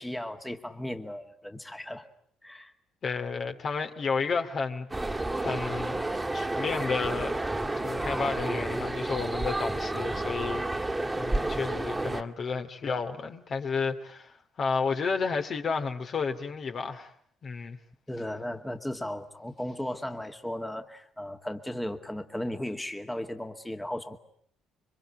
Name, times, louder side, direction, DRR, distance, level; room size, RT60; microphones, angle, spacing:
voice 1, 0.0-2.1 2.4-2.7 18.1-24.2, left 1 dB, 10° left, 2.2 m, -36 dB
voice 2, 3.0-6.1 6.3-7.4 7.8-17.1 17.4-17.8, left 5 dB, 45° left, 2.5 m, -32 dB
sound 1, 4.9-12.2, right 2 dB, 15° right, 2.3 m, -30 dB
26.5 x 25.0 x 8.9 m
figure-of-eight pair, 45°, 0 cm